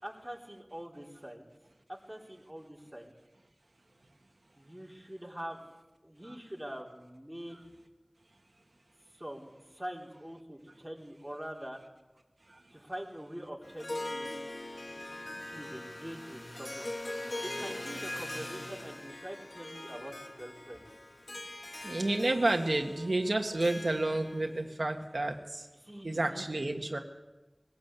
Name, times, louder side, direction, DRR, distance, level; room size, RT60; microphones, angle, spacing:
voice 1, 0.0-1.5 1.9-3.1 4.6-5.6 6.0-7.6 9.1-11.8 12.7-14.4 15.5-16.9 17.4-20.9 25.8-26.7, equal, 15° right, -1 dB, 4.0 m, -44 dB
Harp, 13.6-24.6, left 1 dB, 80° left, 1.5 m, -42 dB
sound 1, 14.4-19.3, equal, 55° left, 6.6 m, -49 dB
voice 2, 21.8-25.7 26.0-27.0, right 2 dB, 90° right, 4 dB, 1.6 m, -30 dB
21.0 x 16.5 x 8.3 m, 1.1 s
wide cardioid pair, 40°, 0 cm